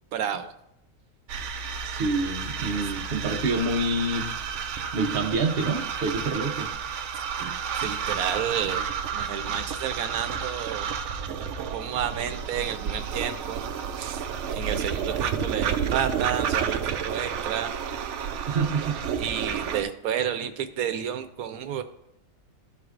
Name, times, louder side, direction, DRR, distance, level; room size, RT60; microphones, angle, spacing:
voice 1, 0.1-0.5 7.2-10.9 11.7-13.7 13.9-14.2 14.5-17.8 19.2-21.8, right 9 dB, 85° right, 9 dB, 1.1 m, -31 dB
sound 1, 1.3-19.8, right 7 dB, 65° right, 0.8 m, -31 dB
voice 2, 1.8-4.3 4.9-6.7 18.5-19.0, right 3 dB, 50° right, 2 dB, 1.0 m, -27 dB
13.5 x 4.7 x 2.4 m, 0.79 s
omnidirectional pair, 1.5 m